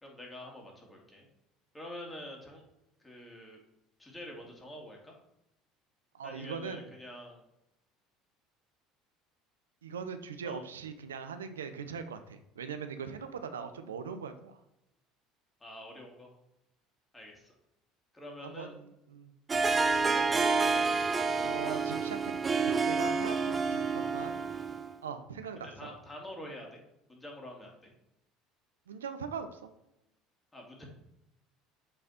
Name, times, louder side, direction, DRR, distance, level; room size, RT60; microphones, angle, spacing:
voice 1, 0.0-1.3 1.7-2.6 3.0-3.6 4.0-5.1 6.2-7.4 10.4-10.6 15.6-16.3 17.1-17.5 18.1-18.8 20.1-20.8 25.6-26.8 27.1-27.9 30.5-30.8, left 1 dB, 15° left, 0 dB, 2.5 m, -46 dB
voice 2, 6.1-6.9 9.8-14.6 18.4-19.3 21.4-22.3 22.8-24.4 25.0-25.9 28.9-29.7, right 6 dB, 85° right, 9 dB, 0.5 m, -41 dB
Harp, 19.5-25.0, right 4 dB, 25° right, 0.7 m, -29 dB
7.6 x 4.1 x 4.3 m, 0.85 s
hypercardioid pair, 65°, 0 cm